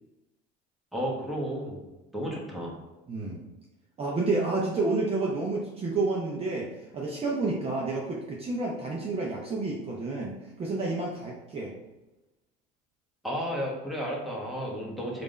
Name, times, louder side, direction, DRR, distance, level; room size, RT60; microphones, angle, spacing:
voice 1, 0.9-1.9 2.1-2.8 13.2-15.2, equal, ahead, -4 dB, 1.1 m, -32 dB
voice 2, 3.1-3.4 4.0-6.7 6.9-11.7, right 3 dB, 30° right, -3 dB, 0.7 m, -30 dB
3.4 x 2.6 x 4.2 m, 1.0 s
supercardioid pair, 100°, 20 cm